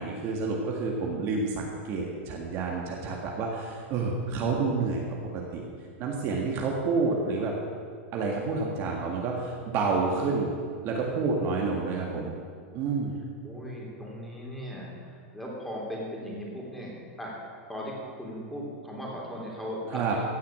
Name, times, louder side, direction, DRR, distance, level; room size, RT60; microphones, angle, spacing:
voice 1, 0.0-5.0 5.3-5.6 6.0-7.5 8.1-10.5 10.8-12.3 12.7-13.2 19.9-20.2, right 4 dB, 40° right, -1 dB, 1.9 m, -29 dB
voice 2, 4.2-4.9 12.0-12.3 13.4-17.4 17.7-20.2, equal, ahead, -4 dB, 3.3 m, -38 dB
16.0 x 5.8 x 8.9 m, 2.1 s
supercardioid pair, 145°, 7 cm